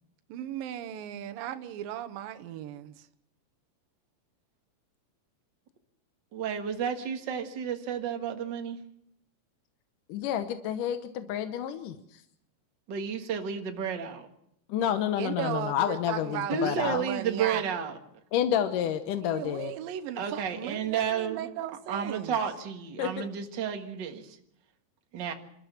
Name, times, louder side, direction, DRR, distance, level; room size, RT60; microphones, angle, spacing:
voice 1, 0.3-3.1 15.2-17.6 19.2-22.4, right 11 dB, 75° right, 2.6 m, -36 dB
voice 2, 6.3-8.8 12.9-14.3 16.5-18.0 20.2-21.5 21.9-24.4 25.1-25.3, right 7 dB, 45° right, 1.6 m, -31 dB
voice 3, 10.1-12.2 14.7-17.0 18.3-19.7 23.0-23.1, left 10 dB, 70° left, 2.3 m, -29 dB
27.0 x 13.5 x 7.3 m
omnidirectional pair, 4.3 m